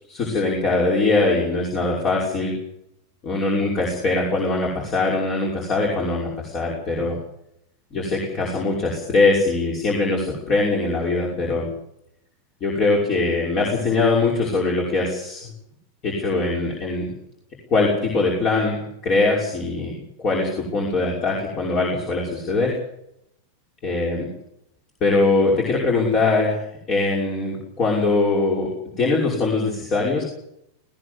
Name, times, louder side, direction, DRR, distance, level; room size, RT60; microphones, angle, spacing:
voice 1, 0.1-2.5 3.2-7.2 7.9-11.7 12.6-15.5 16.0-17.1 17.7-19.9 20.2-22.7 23.8-24.3 25.0-28.7 29.0-30.2, left 3 dB, 35° left, -2 dB, 5.8 m, -22 dB
20.0 x 17.0 x 8.1 m, 0.77 s
figure-of-eight pair, 90°, 0 cm